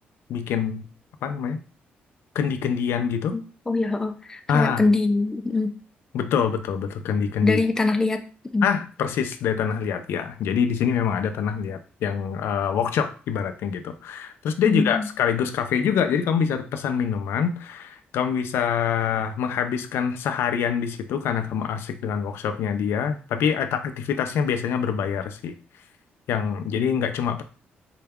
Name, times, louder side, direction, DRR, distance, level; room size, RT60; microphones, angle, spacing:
voice 1, 0.3-0.8 1.2-1.6 2.3-3.4 4.5-4.9 6.1-7.6 8.6-25.5 26.3-27.4, left 7 dB, 85° left, 7 dB, 0.4 m, -25 dB
voice 2, 3.3-5.7 7.4-8.2 8.5-8.7 14.7-15.1, left 3 dB, 15° left, 6 dB, 0.4 m, -23 dB
3.8 x 2.2 x 3.5 m, 0.38 s
cardioid pair, 135°, 4 cm